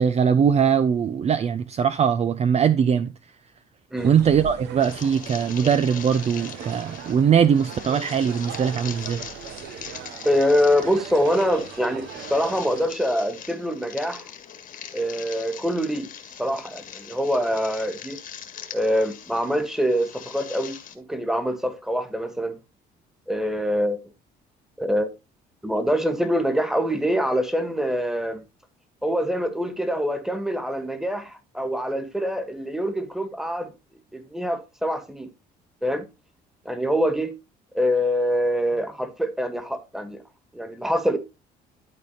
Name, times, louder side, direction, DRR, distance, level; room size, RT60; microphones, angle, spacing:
voice 1, 0.0-3.1 4.0-9.2, right 7 dB, 40° right, 0.6 m, -21 dB
sound 1, 4.0-12.9, right 8 dB, 80° right, 1.2 m, -39 dB
sound 2, 4.8-21.0, left 8 dB, 55° left, 1.7 m, -41 dB
voice 2, 10.2-14.3 14.9-16.1 16.4-18.2 18.7-22.5 23.3-24.0 24.8-25.1 25.6-28.4 29.0-33.7 34.1-35.3 35.8-36.0 36.6-37.3 37.7-40.2 40.5-41.2, equal, 5° right, 1.7 m, -24 dB
12.0 x 4.2 x 4.1 m
cardioid pair, 110°, 17 cm